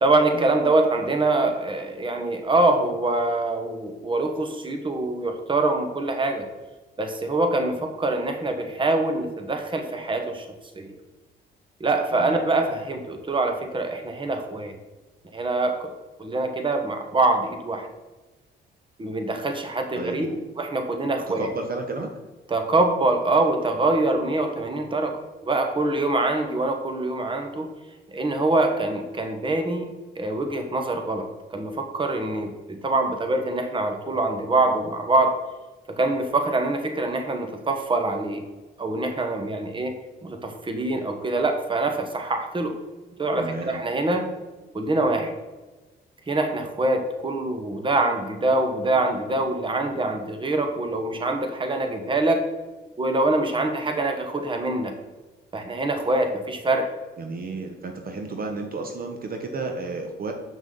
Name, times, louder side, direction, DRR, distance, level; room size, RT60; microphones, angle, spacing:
voice 1, 0.0-6.4 7.0-10.5 10.7-11.0 11.8-14.7 15.3-15.9 16.2-17.9 19.0-20.3 20.6-21.5 22.5-25.2 25.5-27.7 28.1-29.9 30.2-35.4 36.0-38.4 38.8-39.9 40.2-42.7 43.2-44.3 44.7-45.3 46.3-52.4 53.0-54.9 55.5-56.9, right 2 dB, 25° right, 5 dB, 1.1 m, -24 dB
voice 2, 19.9-20.4 21.3-22.1 43.4-43.8 57.2-60.3, right 3 dB, 50° right, 4 dB, 1.0 m, -32 dB
7.2 x 5.9 x 3.9 m, 1.2 s
cardioid pair, 90°, 20 cm